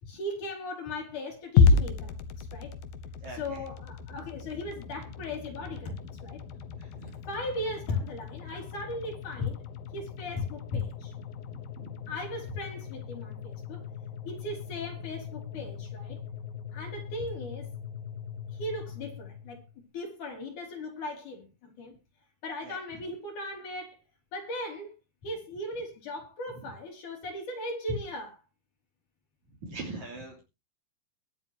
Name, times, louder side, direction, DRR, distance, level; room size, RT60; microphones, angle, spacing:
voice 1, 0.0-2.7 3.4-6.4 7.1-9.6 9.9-11.2 12.1-13.8 14.2-16.2 16.7-17.7 18.5-19.6 19.9-21.9 22.4-24.0 24.3-25.0 25.2-28.4, left 2 dB, 60° left, 4.8 m, -37 dB
sound 1, 1.6-19.8, left 4 dB, 85° left, 2.9 m, -33 dB
voice 2, 3.2-3.7 6.5-7.1 11.5-12.0 22.6-22.8 29.6-30.4, right 3 dB, 55° right, 4.4 m, -43 dB
22.5 x 8.0 x 2.9 m
omnidirectional pair, 4.1 m